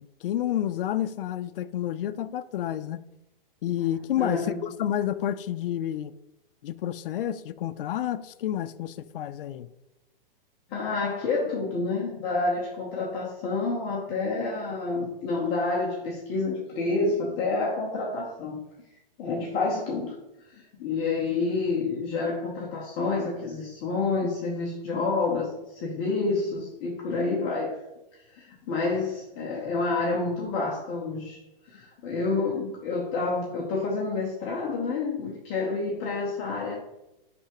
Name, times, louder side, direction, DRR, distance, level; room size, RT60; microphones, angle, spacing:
voice 1, 0.0-3.0 3.6-6.1 6.6-9.7, left 11 dB, 65° left, 0.4 m, -30 dB
voice 2, 4.1-4.6 10.7-18.6 19.2-20.1 20.5-27.9 28.3-31.4 31.7-36.8, left 3 dB, 20° left, 0.6 m, -28 dB
9.5 x 3.4 x 2.9 m
hypercardioid pair, 160°, 29 cm